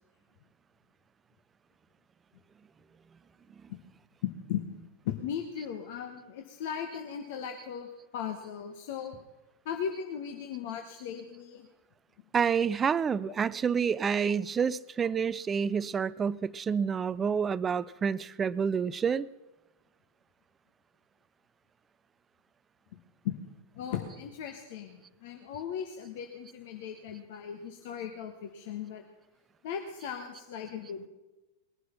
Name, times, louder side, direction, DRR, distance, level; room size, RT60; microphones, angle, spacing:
voice 1, 4.2-9.2 9.6-11.7 22.9-23.0 23.2-23.3 23.7-29.0 29.6-31.1, left 8 dB, 50° left, 5 dB, 1.2 m, -37 dB
voice 2, 12.3-19.3, right 6 dB, 20° right, 20 dB, 0.4 m, -28 dB
20.0 x 11.5 x 5.7 m, 1.1 s
figure-of-eight pair, 90°, 0 cm